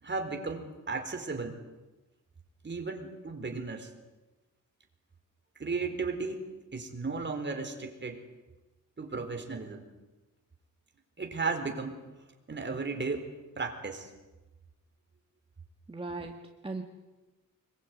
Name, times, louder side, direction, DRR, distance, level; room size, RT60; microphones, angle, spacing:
voice 1, 0.0-1.6 2.6-3.9 5.6-8.2 9.0-9.9 11.2-12.0 12.5-13.2 13.6-14.1, right 4 dB, 35° right, 5 dB, 4.1 m, -35 dB
voice 2, 15.9-16.8, right 3 dB, 15° right, 3 dB, 1.7 m, -38 dB
26.0 x 22.0 x 9.5 m, 1.1 s
wide cardioid pair, 135°, 33 cm